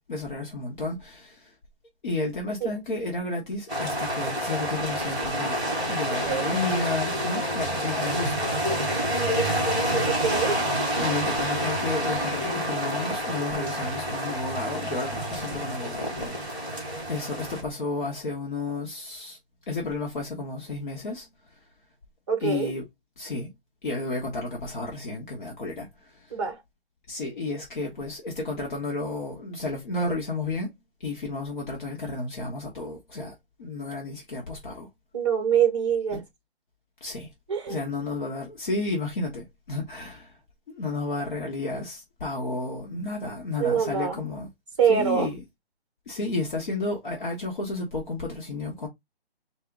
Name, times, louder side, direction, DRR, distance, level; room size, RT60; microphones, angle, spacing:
voice 1, 0.1-1.5 2.0-5.6 5.9-8.5 11.0-19.4 19.7-21.3 22.4-22.8 23.2-23.5 23.8-26.3 27.1-30.7 31.0-33.3 33.6-34.9 36.1-36.2 37.0-37.3 37.7-40.3 40.7-44.5 44.9-45.4 46.1-48.9, left 2 dB, 50° left, 1.2 m, -32 dB
sound 1, 3.7-17.6, equal, ahead, 1.8 m, -28 dB
voice 2, 6.1-6.5 10.1-10.6 22.3-22.7 26.3-26.6 35.1-36.2 37.5-37.8 43.6-44.2 44.8-45.3, right 7 dB, 30° right, 1.0 m, -24 dB
3.4 x 2.8 x 3.6 m
hypercardioid pair, 170°, 32 cm